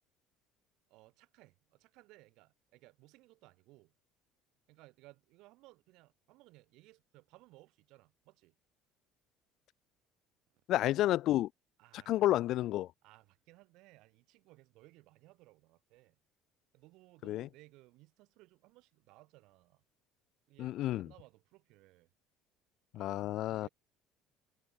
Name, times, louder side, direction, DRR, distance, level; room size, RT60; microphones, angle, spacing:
voice 1, 0.9-3.9 4.7-8.5 11.8-12.1 13.0-16.2 16.7-19.8 20.5-22.1 22.9-23.7, right 20 dB, 70° right, 5.5 m, -61 dB
voice 2, 10.7-11.5 12.1-12.9 17.2-17.5 20.6-21.1 22.9-23.7, left 14 dB, 65° left, 0.4 m, -30 dB
supercardioid pair, 80°, 0 cm